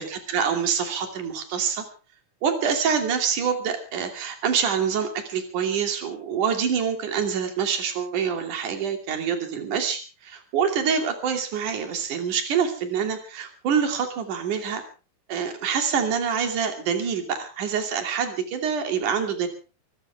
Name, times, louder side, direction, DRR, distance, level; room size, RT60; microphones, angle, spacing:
voice 1, 0.0-1.8 2.4-14.8 15.3-19.5, right 7 dB, 55° right, 5 dB, 4.1 m, -26 dB
25.0 x 15.5 x 3.5 m, 0.34 s
omnidirectional pair, 4.3 m